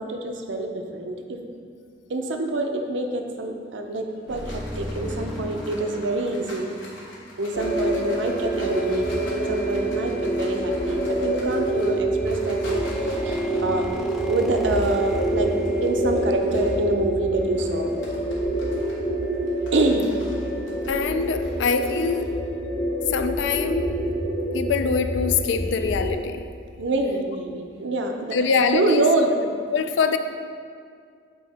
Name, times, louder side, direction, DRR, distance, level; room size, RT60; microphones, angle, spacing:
voice 1, 0.0-1.4 2.1-6.6 7.4-12.8 13.2-13.8 14.3-15.5 15.8-17.9 19.7-20.1 26.8-28.4 28.7-29.4, right 2 dB, 75° right, 4 dB, 0.6 m, -26 dB
sound 1, 3.9-16.8 17.3-22.2, left 1 dB, 90° left, 1.3 m, -45 dB
sound 2, 4.3-7.7 12.8-16.3, left 1 dB, ahead, 0.3 m, -37 dB
sound 3, 7.5-26.1, right 1 dB, 50° left, 0.9 m, -26 dB
voice 2, 20.9-22.3 23.1-24.0 24.5-26.4 28.3-29.0 29.7-30.2, left 5 dB, 70° left, 8 dB, 0.4 m, -24 dB
8.4 x 2.8 x 4.1 m, 2.2 s
head